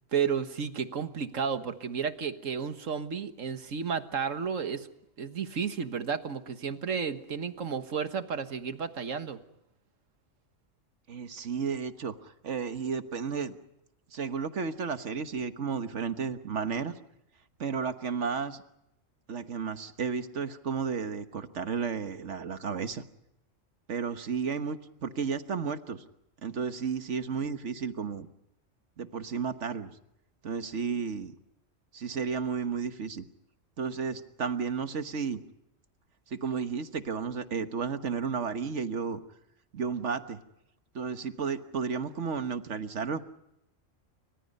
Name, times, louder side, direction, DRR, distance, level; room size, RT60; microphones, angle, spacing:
voice 1, 0.1-4.9 5.2-9.4, right 6 dB, 85° right, 9 dB, 1.7 m, -32 dB
voice 2, 11.1-13.6 14.1-16.9 17.6-18.6 19.3-23.0 23.9-26.0 26.4-28.3 29.0-29.9 30.4-31.3 31.9-33.2 33.8-35.4 36.3-39.2 39.7-40.4 40.9-43.2, right 6 dB, 65° right, 9 dB, 1.6 m, -33 dB
30.0 x 25.0 x 5.4 m, 0.85 s
omnidirectional pair, 1.3 m